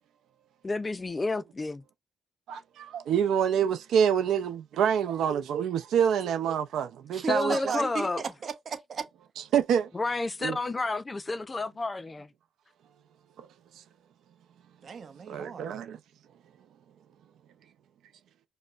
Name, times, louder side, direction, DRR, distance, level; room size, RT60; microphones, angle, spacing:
voice 1, 0.6-1.8 7.3-8.2 9.9-12.3, left 3 dB, 25° left, 0.3 m, -30 dB
voice 2, 2.5-7.7 9.5-9.9 10.4-10.6 13.4-13.5 15.3-16.0, right 8 dB, 75° right, 0.4 m, -26 dB
voice 3, 7.1-9.1 14.8-15.7, right 6 dB, 50° right, 0.8 m, -35 dB
5.2 x 2.1 x 2.3 m
cardioid pair, 90°, 0 cm